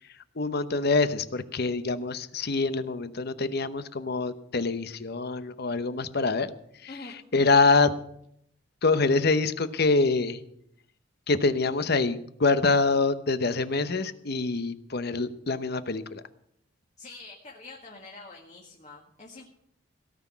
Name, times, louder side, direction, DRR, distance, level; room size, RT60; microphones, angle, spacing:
voice 1, 0.4-6.5 6.8-6.9 7.3-7.9 8.8-10.4 11.3-16.2, left 3 dB, 55° left, 13 dB, 0.9 m, -25 dB
voice 2, 17.0-19.4, left 3 dB, 40° left, -1 dB, 1.9 m, -45 dB
17.5 x 6.1 x 9.5 m, 0.73 s
head